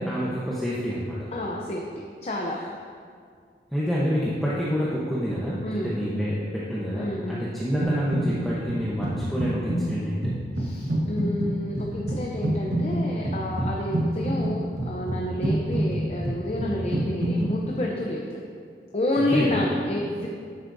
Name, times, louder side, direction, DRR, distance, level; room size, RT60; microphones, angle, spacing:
voice 1, 0.0-1.3 3.7-10.3 19.2-19.6, equal, ahead, -9 dB, 0.9 m, -28 dB
voice 2, 1.3-1.8 2.2-2.6 5.6-5.9 7.0-7.4 10.6-18.4 18.9-20.3, left 1 dB, 35° left, -2 dB, 0.6 m, -29 dB
sound 1, 7.8-8.4 8.7-17.5, right 1 dB, 75° right, 1.3 m, -28 dB
11.0 x 8.1 x 2.7 m, 2.1 s
head